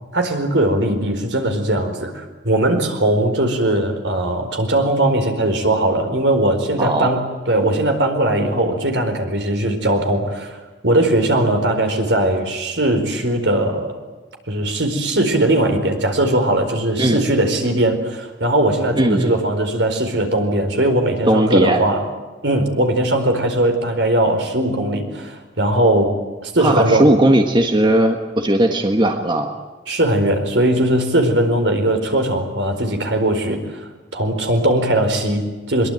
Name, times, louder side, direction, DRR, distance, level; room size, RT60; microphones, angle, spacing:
voice 1, 0.1-14.0 14.5-22.0 22.4-27.0 29.9-35.9, right 1 dB, 70° right, 5 dB, 4.6 m, -19 dB
voice 2, 6.8-7.1 17.0-17.2 19.0-19.3 21.3-21.9 26.6-29.5, right 1 dB, 25° right, 4 dB, 1.6 m, -17 dB
24.0 x 22.0 x 9.2 m, 1.2 s
head